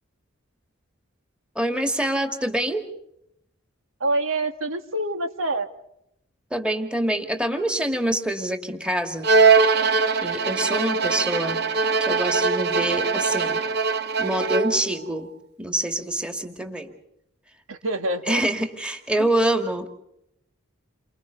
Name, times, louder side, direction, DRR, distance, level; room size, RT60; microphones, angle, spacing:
voice 1, 1.6-2.8 6.5-9.3 10.2-11.6 12.0-13.6 14.2-15.3 15.6-16.9 18.3-19.9, right 1 dB, 5° right, 5 dB, 2.1 m, -26 dB
voice 2, 4.0-5.7 17.7-18.4 19.2-19.3, right 2 dB, 80° right, 6 dB, 1.9 m, -26 dB
Bowed string instrument, 9.2-14.9, right 4 dB, 50° right, 1.0 m, -21 dB
29.5 x 25.5 x 4.0 m, 0.77 s
head